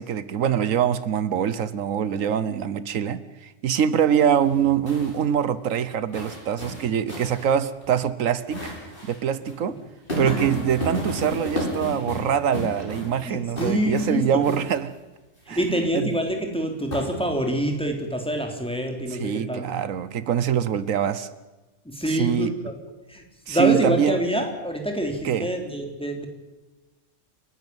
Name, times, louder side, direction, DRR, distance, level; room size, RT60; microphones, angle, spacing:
voice 1, 0.0-8.7 9.0-9.8 10.2-14.9 15.5-16.1 19.1-21.3 22.1-22.5 23.5-24.2 25.2-25.5, right 8 dB, 85° right, 15 dB, 1.3 m, -24 dB
sound 1, 4.4-5.2 6.1-7.4 7.8-7.9 8.5-9.2 9.4-9.5 10.1-13.2 13.6-14.1 14.4-14.8 16.9-17.5, equal, 45° left, 6.5 m, -32 dB
voice 2, 13.3-14.6 15.5-19.7 21.9-22.8 23.1-26.3, equal, 5° left, 2 dB, 3.6 m, -26 dB
29.0 x 12.0 x 9.1 m, 1.1 s
omnidirectional pair, 1.3 m